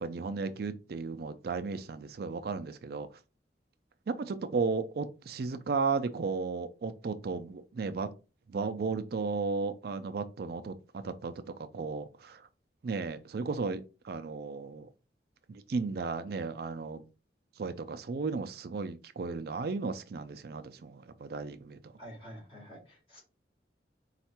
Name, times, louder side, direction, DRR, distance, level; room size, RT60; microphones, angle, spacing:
voice 1, 0.0-3.1 4.1-8.1 8.5-11.3 11.7-12.4 12.8-14.9 15.5-17.0 17.6-21.9, right 4 dB, 60° right, 0.4 m, -34 dB
voice 2, 22.0-23.2, equal, 30° left, 2.3 m, -48 dB
4.3 x 2.4 x 4.2 m
head